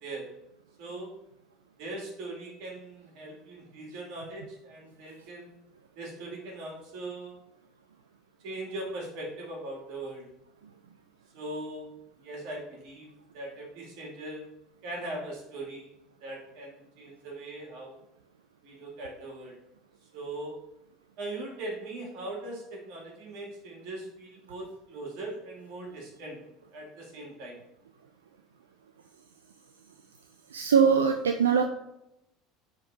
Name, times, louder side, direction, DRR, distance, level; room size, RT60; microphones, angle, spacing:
voice 1, 0.8-1.1 1.8-5.5 6.0-7.4 8.4-10.3 11.3-11.9 12.2-14.4 14.8-15.9 16.2-18.0 18.6-19.6 20.1-20.6 21.2-26.4 26.7-27.6, right 2 dB, 60° right, -2 dB, 2.3 m, -40 dB
voice 2, 30.5-31.6, right 7 dB, 80° right, 6 dB, 0.3 m, -22 dB
10.5 x 3.8 x 2.6 m, 0.86 s
hypercardioid pair, 70°, 0 cm